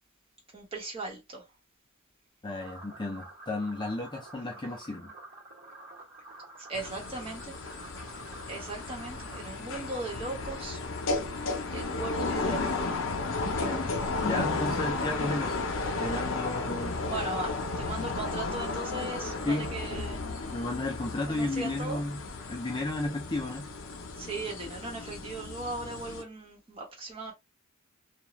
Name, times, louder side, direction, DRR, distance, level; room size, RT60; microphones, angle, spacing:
voice 1, 0.5-1.5 6.6-7.6 8.5-10.8 11.5-12.9 17.0-20.2 21.3-22.0 24.2-27.3, right 3 dB, 25° right, 1.1 m, -38 dB
voice 2, 2.4-5.1 13.4-13.9 14.2-15.6 16.0-17.1 19.4-19.7 20.5-22.2 22.5-23.7, left 2 dB, 20° left, 0.4 m, -33 dB
sound 1, 2.6-9.5, right 2 dB, 60° right, 1.3 m, -49 dB
sound 2, 6.7-26.2, left 3 dB, 65° left, 0.6 m, -34 dB
2.4 x 2.3 x 3.0 m
head